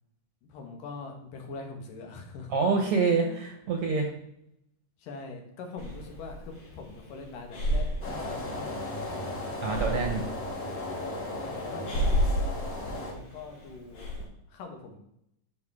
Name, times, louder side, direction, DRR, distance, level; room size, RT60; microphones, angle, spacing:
voice 1, 0.4-2.5 3.2-3.4 5.0-8.7 9.1-9.9 11.4-12.2 12.9-14.1 14.5-15.0, left 4 dB, 90° left, 2 dB, 3.1 m, -43 dB
voice 2, 2.5-4.1 9.6-10.2, right 4 dB, 60° right, 2 dB, 1.7 m, -26 dB
Breathing, 5.8-14.2, equal, 55° left, 4.5 m, -33 dB
sound 1, 8.0-13.1, left 2 dB, 35° left, 1.7 m, -36 dB
13.0 x 5.3 x 3.6 m, 0.76 s
omnidirectional pair, 3.7 m